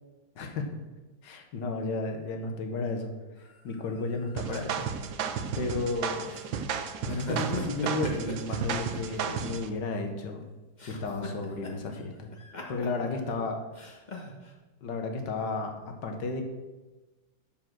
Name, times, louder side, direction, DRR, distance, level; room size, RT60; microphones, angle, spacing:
voice 1, 0.4-0.7 1.2-3.1 3.6-5.1 5.6-6.4 7.0-10.4 10.8-12.3 12.7-13.6 14.8-16.4, left 3 dB, 60° left, 4 dB, 1.6 m, -33 dB
sound 1, 3.4-5.5 6.3-6.6 7.1-9.2 9.5-10.4 10.8-12.0 12.3-13.3 13.7-14.5, left 1 dB, 25° left, 1.2 m, -40 dB
sound 2, 4.4-9.7, right 7 dB, 70° right, 1.4 m, -33 dB
7.6 x 7.4 x 6.2 m, 1.2 s
omnidirectional pair, 2.3 m